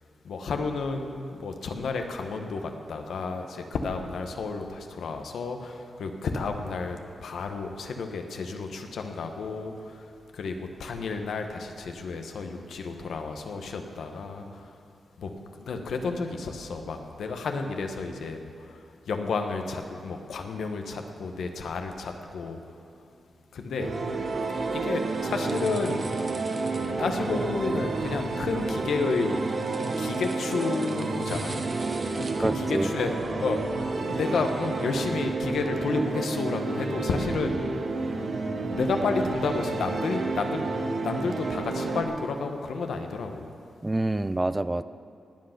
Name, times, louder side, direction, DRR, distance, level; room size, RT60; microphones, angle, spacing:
voice 1, 0.2-14.8 15.2-22.8 23.5-23.9 24.7-26.1 27.0-31.6 32.2-33.6 34.1-37.7 38.7-40.6 41.0-43.5, left 4 dB, 85° left, 5 dB, 1.1 m, -31 dB
sound 1, 23.8-42.0, right 3 dB, 65° right, 1.3 m, -31 dB
sound 2, 23.9-35.0, right 3 dB, 50° right, 1.2 m, -36 dB
voice 2, 32.4-32.9 43.8-44.8, right 2 dB, 20° right, 14 dB, 0.4 m, -26 dB
18.0 x 8.0 x 5.9 m, 2.4 s
cardioid pair, 85°, 0 cm